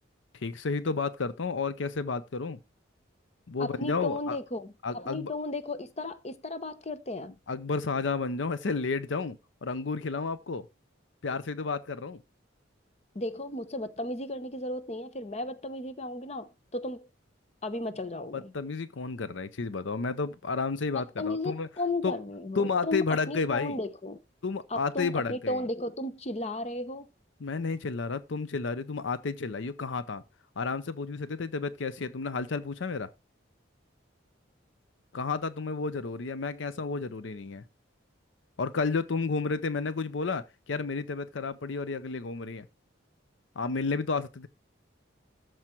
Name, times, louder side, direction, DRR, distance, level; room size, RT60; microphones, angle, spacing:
voice 1, 0.3-2.6 3.5-4.4 4.8-5.3 7.5-10.7 11.2-12.2 18.3-21.7 22.0-22.2 22.6-23.8 24.4-25.6 27.4-30.2 30.6-33.1 35.1-37.6 38.6-42.7 43.6-44.5, left 4 dB, 70° left, 0.6 m, -31 dB
voice 2, 3.6-7.3 13.1-17.1 17.6-18.5 20.9-24.2 24.7-27.1, left 2 dB, 35° left, 0.8 m, -34 dB
13.5 x 4.8 x 4.5 m
head